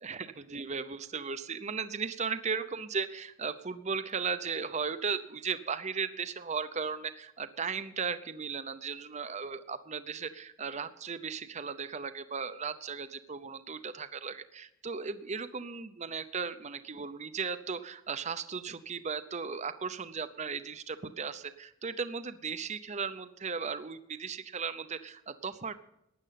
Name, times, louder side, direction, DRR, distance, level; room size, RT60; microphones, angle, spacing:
voice 1, 0.0-25.7, right 5 dB, 35° right, 12 dB, 0.7 m, -36 dB
15.5 x 10.5 x 5.8 m, 0.79 s
head